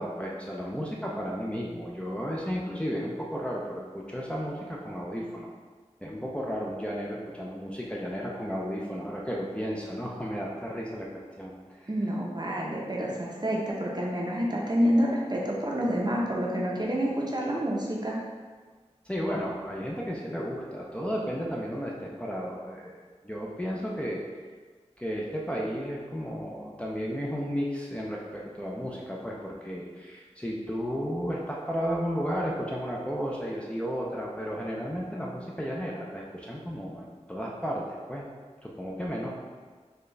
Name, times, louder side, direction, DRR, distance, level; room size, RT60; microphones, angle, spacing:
voice 1, 0.0-5.5 6.0-11.5 11.8-11.9 19.1-22.9 23.2-24.2 25.0-38.2 38.6-39.3, equal, 10° left, -4 dB, 0.5 m, -33 dB
voice 2, 11.9-18.2, equal, 35° right, -4 dB, 0.7 m, -28 dB
4.4 x 2.4 x 3.2 m, 1.4 s
wide cardioid pair, 45°, 12 cm